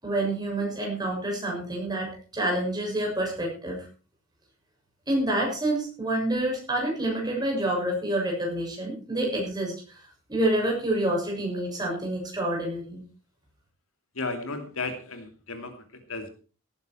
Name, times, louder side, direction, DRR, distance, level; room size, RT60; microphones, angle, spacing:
voice 1, 0.0-3.9 5.1-10.0 10.3-13.0, right 1 dB, 20° right, -1 dB, 6.6 m, -28 dB
voice 2, 14.1-16.3, left 3 dB, 85° left, 6 dB, 2.7 m, -34 dB
17.0 x 10.5 x 4.5 m, 0.37 s
head